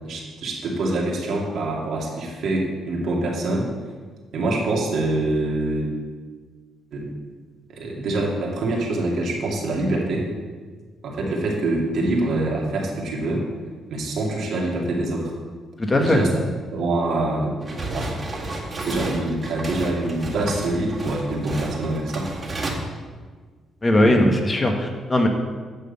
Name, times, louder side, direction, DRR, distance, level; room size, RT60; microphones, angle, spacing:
voice 1, 0.0-3.7 4.3-5.9 6.9-7.1 7.7-10.3 11.0-13.4 13.9-15.3 15.9-16.3 16.7-18.1 18.4-18.5 18.8-22.3 24.0-24.2, right 2 dB, 70° right, -2 dB, 2.3 m, -25 dB
voice 2, 15.9-16.2 23.8-25.3, left 1 dB, 25° left, 3 dB, 1.4 m, -19 dB
sound 1, 17.6-22.7, right 2 dB, 30° right, 2.1 m, -32 dB
9.3 x 6.6 x 5.4 m, 1.5 s
cardioid pair, 90°, 0 cm